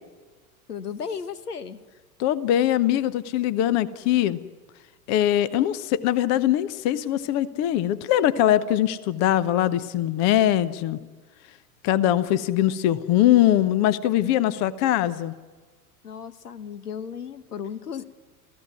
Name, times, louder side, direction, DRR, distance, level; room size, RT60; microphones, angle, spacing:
voice 1, 0.7-1.8 16.0-18.0, left 7 dB, 75° left, 15 dB, 1.3 m, -35 dB
voice 2, 2.2-4.4 5.1-11.0 11.8-15.3, left 12 dB, 35° left, 18 dB, 0.9 m, -22 dB
27.5 x 16.0 x 9.7 m, 1.4 s
figure-of-eight pair, 90°, 47 cm